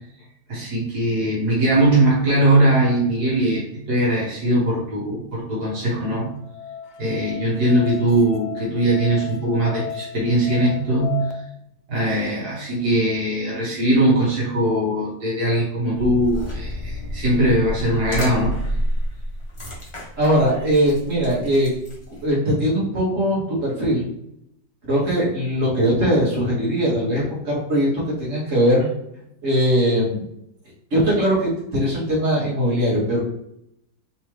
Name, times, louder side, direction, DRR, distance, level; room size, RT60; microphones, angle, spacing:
voice 1, 0.5-6.3 7.0-11.2 11.9-18.6, right 1 dB, 80° right, -5 dB, 1.7 m, -20 dB
Musical instrument, 5.6-11.3, left 7 dB, 85° left, 1.2 m, -35 dB
sound 1, 15.9-22.3, equal, 25° left, 0.8 m, -30 dB
voice 2, 20.2-21.7 22.2-24.0 24.9-27.9 28.2-28.9 29.4-30.2 30.9-33.2, equal, 50° right, -6 dB, 1.9 m, -20 dB
3.6 x 3.3 x 3.0 m, 0.79 s
omnidirectional pair, 1.7 m